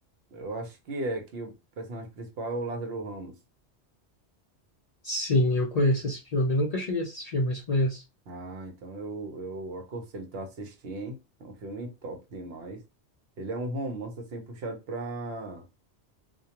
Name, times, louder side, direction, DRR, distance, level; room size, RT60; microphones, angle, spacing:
voice 1, 0.3-3.3 8.3-12.8 13.4-15.6, right 2 dB, 65° right, 0.8 m, -36 dB
voice 2, 5.0-8.0, left 1 dB, 60° left, 0.4 m, -26 dB
2.2 x 2.2 x 2.8 m
omnidirectional pair, 1.2 m